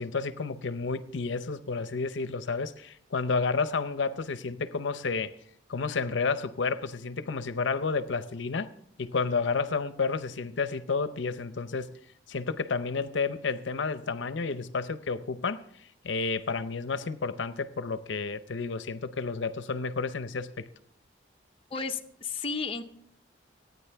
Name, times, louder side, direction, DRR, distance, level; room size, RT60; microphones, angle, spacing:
voice 1, 0.0-5.3 5.7-8.7 9.0-11.9 12.3-15.7 16.0-20.7, left 4 dB, 75° left, 0.6 m, -31 dB
voice 2, 21.7-22.8, left 4 dB, 30° left, 0.6 m, -33 dB
25.0 x 9.4 x 3.4 m
head